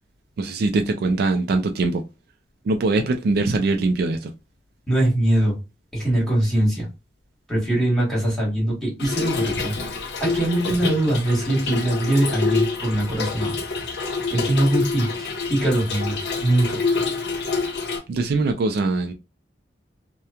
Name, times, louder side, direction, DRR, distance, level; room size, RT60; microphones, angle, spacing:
voice 1, 0.4-2.0 2.7-4.3 18.1-19.1, right 3 dB, 55° right, 0.3 m, -22 dB
voice 2, 4.9-5.5 5.9-6.9 7.5-9.7 10.2-13.5 14.3-16.8, right 1 dB, 5° left, 1.3 m, -22 dB
Trickle dribble / Fill (with liquid), 9.0-18.0, left 4 dB, 65° left, 0.7 m, -27 dB
2.9 x 2.1 x 2.3 m
head